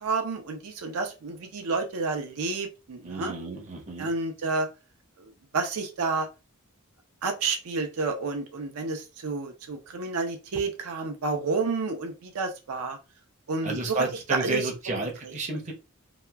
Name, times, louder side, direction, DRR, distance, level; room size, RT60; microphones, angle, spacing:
voice 1, 0.0-3.3 4.0-4.7 5.2-6.3 7.2-13.0 13.5-14.0 14.3-15.3, right 4 dB, 75° right, 4 dB, 0.5 m, -30 dB
voice 2, 3.0-4.1 13.6-15.7, right 2 dB, 30° right, 1 dB, 0.6 m, -31 dB
2.8 x 2.2 x 2.2 m, 0.29 s
head